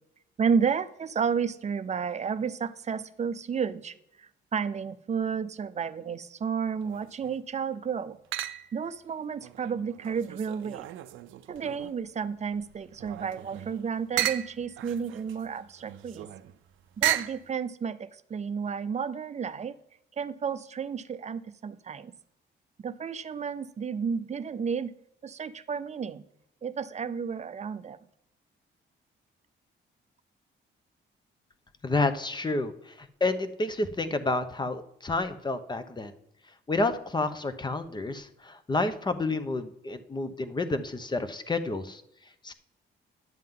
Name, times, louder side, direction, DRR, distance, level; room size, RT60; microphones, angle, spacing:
voice 1, 0.4-8.2 8.7-10.9 11.5-16.3 17.0-19.8 20.2-22.1 22.8-24.9 25.2-26.2 26.6-28.0, right 6 dB, 35° right, 14 dB, 0.5 m, -32 dB
sound 1, 6.8-7.4 8.3-8.9 9.4-12.1 12.5-17.5, right 13 dB, 80° right, 0.5 m, -35 dB
voice 2, 31.8-36.1 36.7-42.0 42.4-42.5, left 2 dB, 20° left, 10 dB, 0.8 m, -30 dB
11.0 x 7.5 x 3.7 m, 0.78 s
cardioid pair, 90°, 20 cm